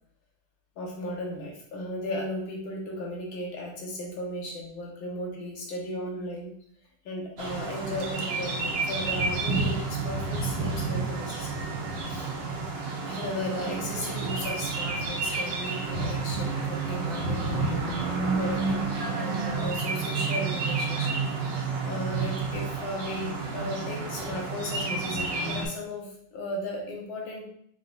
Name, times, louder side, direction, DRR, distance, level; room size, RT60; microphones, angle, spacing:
voice 1, 0.8-6.5 7.1-11.6 12.0-12.3 13.0-17.8 18.1-21.1 21.8-27.5, left 1 dB, 65° left, -2 dB, 1.9 m, -35 dB
sound 1, 7.4-25.7, right 4 dB, 85° right, 1.8 m, -30 dB
5.6 x 3.8 x 2.5 m, 0.66 s
omnidirectional pair, 2.4 m